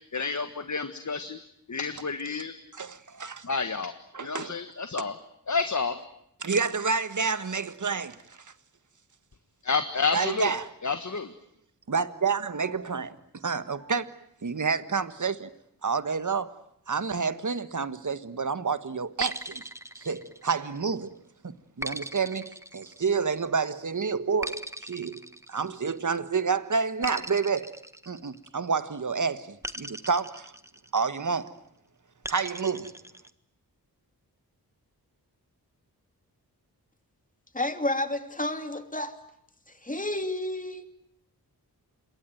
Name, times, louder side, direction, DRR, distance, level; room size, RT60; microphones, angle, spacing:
voice 1, 0.1-1.4 1.7-2.5 3.4-3.9 4.2-5.1 5.5-6.0 9.6-10.5 10.8-11.3, left 4 dB, 50° left, 1.6 m, -29 dB
voice 2, 2.8-3.4 4.1-4.5 6.4-8.4 10.1-10.7 11.9-13.2 13.4-14.1 14.4-15.5 15.8-16.5 16.9-19.7 19.9-21.1 21.4-25.2 25.5-27.7 28.1-30.5 30.9-31.5 32.3-32.9, right 5 dB, 50° right, 1.6 m, -29 dB
sound 1, 19.2-20.9 21.8-23.5 24.4-26.1 27.0-28.8 29.6-31.2 32.2-33.3, right 1 dB, 5° right, 1.3 m, -39 dB
voice 3, 37.5-39.2 39.8-40.8, left 1 dB, 20° left, 2.8 m, -30 dB
27.0 x 22.5 x 9.3 m
wide cardioid pair, 65°, 37 cm